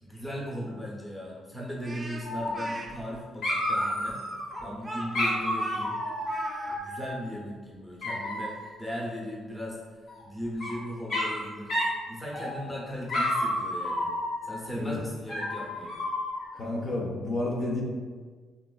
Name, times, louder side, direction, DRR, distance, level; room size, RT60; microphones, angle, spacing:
voice 1, 0.0-4.2 4.6-6.0 6.7-9.8 10.2-11.7 12.1-14.1 14.4-15.9, equal, 5° left, -4 dB, 0.7 m, -37 dB
Speech, 1.8-2.9 3.8-6.8, right 1 dB, 25° right, 0.3 m, -39 dB
Dog, 2.2-3.1 3.4-4.6 5.1-7.2 8.0-8.7 10.1-10.7 11.1-11.4 11.7-12.0 12.3-12.7 13.1-14.6 15.3-16.5, left 1 dB, 80° left, 1.1 m, -31 dB
voice 2, 16.5-17.8, left 2 dB, 45° left, -3 dB, 0.5 m, -30 dB
2.9 x 2.3 x 2.3 m, 1.5 s
cardioid pair, 90°, 0 cm